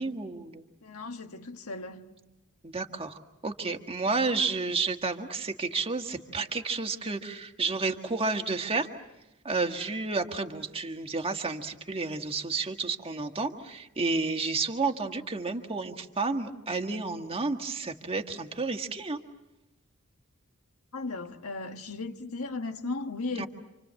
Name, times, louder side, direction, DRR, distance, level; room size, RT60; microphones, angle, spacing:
voice 1, 0.0-0.6 2.6-3.2 3.4-8.9 9.4-19.2 23.4-23.5, right 3 dB, 25° right, 1.6 m, -31 dB
voice 2, 0.8-2.2 20.9-23.5, left 3 dB, 80° left, 1.6 m, -36 dB
28.5 x 27.0 x 7.6 m
head